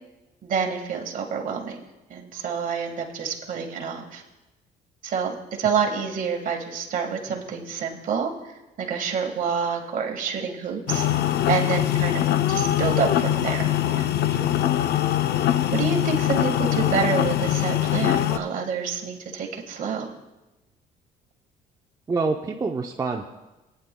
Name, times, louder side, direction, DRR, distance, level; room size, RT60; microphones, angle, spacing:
voice 1, 0.4-1.8 2.1-4.2 5.0-8.3 8.8-11.1 11.5-14.2 15.7-20.1, right 6 dB, 55° right, 2 dB, 1.6 m, -28 dB
sound 1, 10.9-18.4, left 12 dB, 70° left, 0.5 m, -22 dB
voice 2, 22.1-23.3, right 4 dB, 20° right, 2 dB, 0.6 m, -27 dB
18.5 x 9.5 x 2.2 m, 1.0 s
cardioid pair, 110°, 17 cm